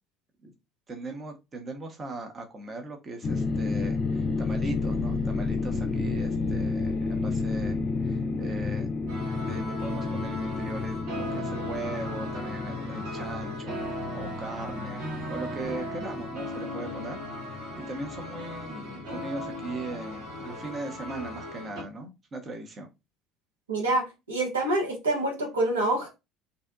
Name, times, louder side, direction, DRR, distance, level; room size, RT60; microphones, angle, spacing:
voice 1, 0.9-8.9 9.4-17.2 17.8-22.9, right 2 dB, 30° right, 3 dB, 0.6 m, -39 dB
sound 1, 3.2-20.4, left 4 dB, 45° left, 0.4 m, -32 dB
sound 2, 9.1-21.8, equal, 60° right, 1.0 m, -37 dB
voice 2, 23.7-26.1, right 2 dB, 80° right, 0 dB, 0.8 m, -26 dB
2.7 x 2.1 x 2.4 m, 0.24 s
figure-of-eight pair, 60°, 0 cm